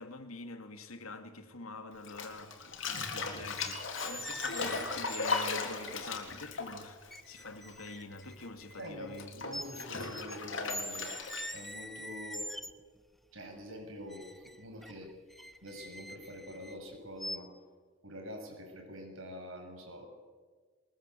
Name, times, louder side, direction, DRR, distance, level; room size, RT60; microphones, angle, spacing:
voice 1, 0.0-2.6 2.9-9.3 10.0-10.2, left 3 dB, 90° left, 2.3 m, -46 dB
Bathtub (filling or washing), 2.0-7.9 8.2-11.7, left 4 dB, 60° left, 3.4 m, -37 dB
sound 1, 3.6-5.5 6.4-6.5 7.1-9.3 9.5-10.4 10.7-13.0 14.1-16.8 17.2-17.4, equal, ahead, 0.7 m, -44 dB
voice 2, 8.8-11.2 11.5-12.5 13.3-15.1 15.6-17.5 18.0-20.1, equal, 75° right, 7.4 m, -45 dB
22.5 x 21.0 x 8.5 m
head